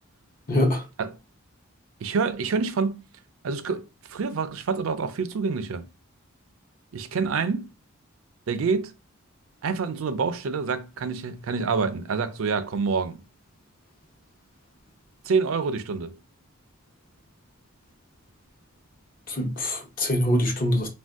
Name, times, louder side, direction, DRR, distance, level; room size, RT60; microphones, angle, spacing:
voice 1, 0.5-0.8 19.3-20.9, left 1 dB, 40° left, 0.7 m, -24 dB
voice 2, 2.0-3.0 3.4-5.9 6.9-7.7 8.5-8.9 9.6-13.2 15.3-16.2, right 5 dB, 75° right, 0.4 m, -27 dB
2.5 x 2.1 x 3.4 m
head